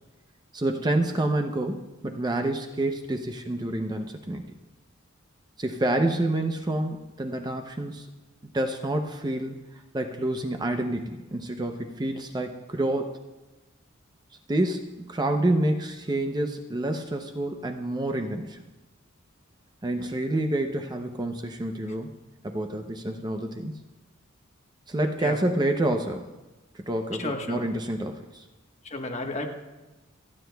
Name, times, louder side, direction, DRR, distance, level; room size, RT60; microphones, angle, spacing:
voice 1, 0.5-4.5 5.6-8.1 8.5-9.6 9.9-13.1 14.5-18.6 19.8-22.1 22.4-23.7 24.9-26.2 26.7-28.4, right 1 dB, 20° right, 5 dB, 0.6 m, -28 dB
voice 2, 27.2-27.6 28.9-29.5, left 2 dB, 35° left, 2 dB, 1.2 m, -32 dB
28.0 x 9.8 x 2.3 m, 1.1 s
head